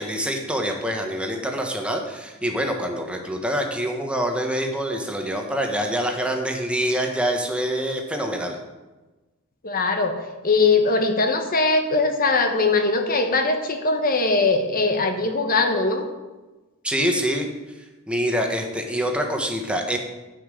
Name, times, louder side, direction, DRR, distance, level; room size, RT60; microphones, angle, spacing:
voice 1, 0.0-8.6 16.8-17.5 18.1-20.0, equal, 5° right, 2 dB, 1.3 m, -25 dB
voice 2, 9.6-10.2 10.4-16.1, left 3 dB, 40° left, 5 dB, 1.2 m, -21 dB
10.0 x 5.8 x 7.7 m, 1.2 s
head